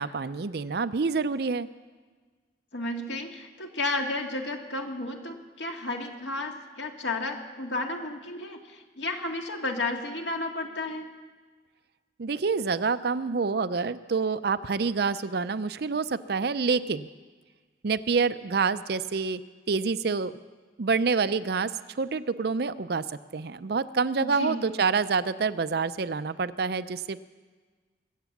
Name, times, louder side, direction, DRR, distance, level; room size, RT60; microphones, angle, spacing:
voice 1, 0.0-1.7 12.2-17.1 17.8-19.4 19.7-20.3 20.8-21.7 22.0-23.0 23.3-27.2, right 5 dB, 60° right, 14 dB, 0.5 m, -27 dB
voice 2, 2.7-11.1 24.2-24.6, left 2 dB, 85° left, 3 dB, 1.9 m, -32 dB
23.5 x 8.1 x 7.2 m, 1.4 s
head